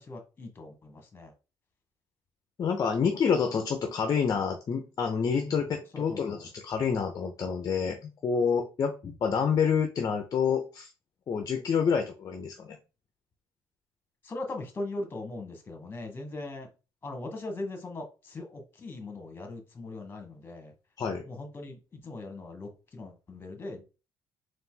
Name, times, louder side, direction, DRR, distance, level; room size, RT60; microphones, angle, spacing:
voice 1, 0.0-1.3 5.4-5.6 5.9-6.4 14.2-16.7 17.0-20.7 21.2-23.8, left 2 dB, 25° left, 1.3 m, -40 dB
voice 2, 2.6-10.9 11.3-12.8 21.0-21.3, left 6 dB, 40° left, 0.7 m, -28 dB
4.0 x 2.6 x 3.8 m
cardioid pair, 130°, 9 cm